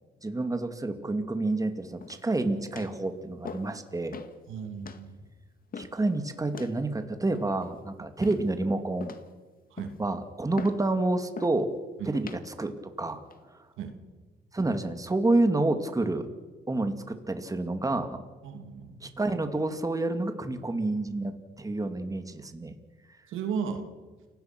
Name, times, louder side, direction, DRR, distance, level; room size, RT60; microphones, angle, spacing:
voice 1, 0.2-4.2 5.8-9.1 10.0-11.7 12.1-12.7 13.0-13.2 13.5-13.6 14.5-16.3 16.7-18.2 19.0-22.7, right 2 dB, 15° right, 8 dB, 2.3 m, -29 dB
sound 1, 2.0-2.4 2.8-3.0 3.4-3.8 4.1-4.4 4.8-5.0 5.7-6.0 6.5-6.8 7.3-7.8 8.2-8.6 9.0-9.3 9.8-10.1 10.6-10.8 11.4-11.6 12.1-12.4 13.1-13.4, left 5 dB, 45° left, 2.0 m, -41 dB
voice 2, 4.5-5.2 9.7-10.0 12.0-12.1 13.8-14.0 18.4-19.1 23.3-23.9, right 6 dB, 85° right, 6 dB, 2.7 m, -35 dB
29.5 x 17.5 x 6.1 m, 1.3 s
cardioid pair, 90°, 20 cm